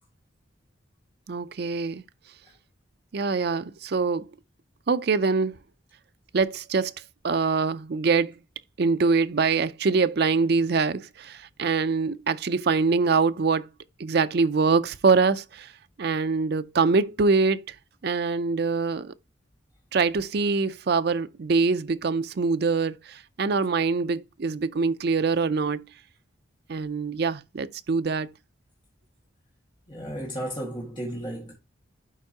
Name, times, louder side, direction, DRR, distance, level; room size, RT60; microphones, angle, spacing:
voice 1, 1.3-2.0 3.1-4.3 4.9-5.6 6.3-6.9 7.2-8.3 8.8-13.7 14.0-15.7 16.0-17.7 18.0-19.1 19.9-25.8 26.7-28.3, right 4 dB, 55° right, 0.4 m, -24 dB
voice 2, 29.9-31.5, right 1 dB, 25° left, 1.7 m, -34 dB
11.0 x 4.5 x 2.8 m
head